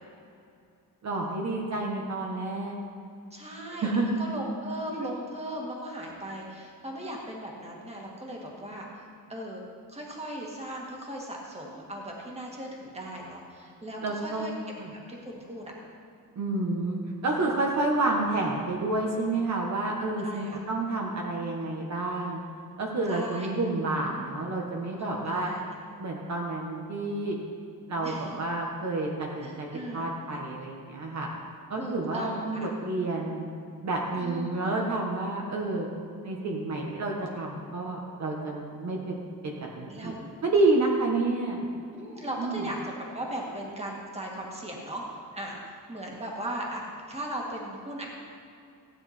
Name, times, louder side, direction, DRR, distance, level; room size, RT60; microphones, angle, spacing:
voice 1, 1.0-2.8 3.8-4.2 14.0-14.5 14.8-14.9 16.3-22.4 22.8-25.5 26.0-27.4 27.9-31.3 31.7-33.5 33.8-35.9 36.2-40.1 40.4-41.7 42.4-42.6, right 2 dB, 50° right, -1 dB, 1.4 m, -29 dB
voice 2, 3.3-9.6 9.9-14.5 15.1-15.6 20.2-20.6 23.1-23.5 25.0-25.6 28.0-28.4 29.4-30.1 31.8-32.7 34.2-34.6 39.9-40.3 41.9-45.0 45.3-48.1, right 1 dB, 20° right, -2 dB, 1.9 m, -38 dB
16.0 x 9.6 x 4.4 m, 2.5 s
wide cardioid pair, 175°, 35 cm